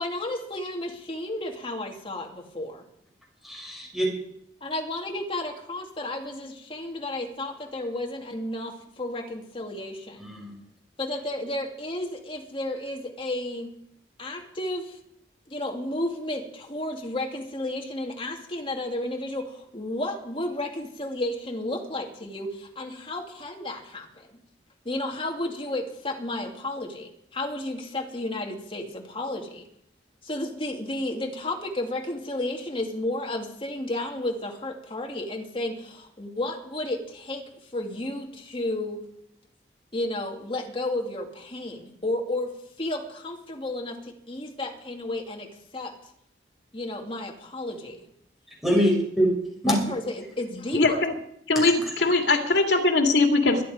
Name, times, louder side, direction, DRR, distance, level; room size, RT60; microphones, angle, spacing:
voice 1, 0.0-2.8 4.6-10.3 11.0-13.7 14.2-15.0 15.5-24.4 24.8-29.6 30.2-37.4 37.7-39.0 39.9-45.9 46.7-48.0 49.7-51.1, left 1 dB, 30° left, 1 dB, 2.4 m, -32 dB
voice 2, 3.4-4.1 10.2-10.5 48.6-49.3 49.6-49.7 51.5-51.7 52.0-52.1, equal, ahead, -2 dB, 5.9 m, -24 dB
voice 3, 50.7-51.1 51.5-53.6, left 3 dB, 80° left, 4 dB, 2.4 m, -21 dB
23.0 x 10.0 x 5.0 m, 0.72 s
head